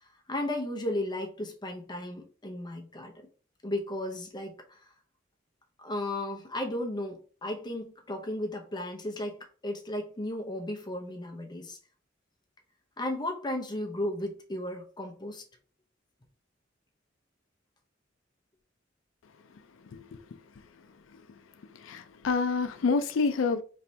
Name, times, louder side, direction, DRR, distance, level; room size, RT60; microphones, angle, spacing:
voice 1, 0.0-3.1 3.6-4.9 5.8-11.8 13.0-15.4, left 1 dB, 20° left, 0.7 m, -35 dB
voice 2, 19.9-20.4 21.1-21.2 21.7-23.6, left 4 dB, 80° left, 0.4 m, -28 dB
4.3 x 3.1 x 2.7 m
head